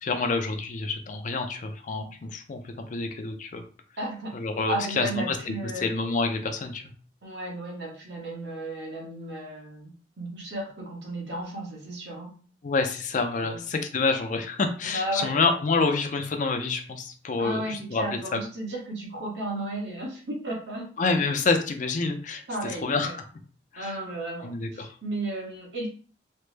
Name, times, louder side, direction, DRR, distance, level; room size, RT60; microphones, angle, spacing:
voice 1, 0.0-3.6 4.3-5.5 5.8-6.8 12.6-18.0 18.3-18.4 21.0-23.1 23.7-23.9 24.4-24.9, left 4 dB, 45° left, 5 dB, 0.4 m, -27 dB
voice 2, 4.0-4.3 4.7-5.9 7.2-12.3 13.4-13.6 14.8-15.4 17.4-20.9 22.5-23.2 23.8-25.9, right 1 dB, 75° right, -1 dB, 1.1 m, -34 dB
3.2 x 2.0 x 3.2 m, 0.42 s
head